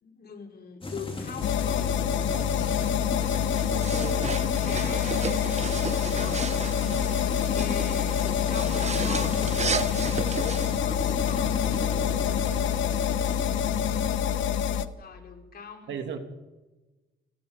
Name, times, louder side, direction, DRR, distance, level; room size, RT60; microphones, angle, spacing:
voice 1, 0.0-1.9 4.6-6.9 7.2-11.6 14.9-16.0, left 6 dB, 50° left, 4 dB, 3.9 m, -42 dB
sound 1, 0.8-14.1, left 2 dB, 25° left, 3.8 m, -36 dB
sound 2, 1.4-14.9, left 9 dB, 70° left, 1.2 m, -26 dB
voice 2, 2.1-3.4 3.7-4.6 6.1-6.4 6.9-7.2 11.7-13.0 15.9-16.2, right 7 dB, 70° right, 6 dB, 2.9 m, -40 dB
sound 3, 3.2-10.8, right 6 dB, 35° right, 1.0 m, -35 dB
29.5 x 17.0 x 5.4 m, 1.1 s
cardioid pair, 90°, 20 cm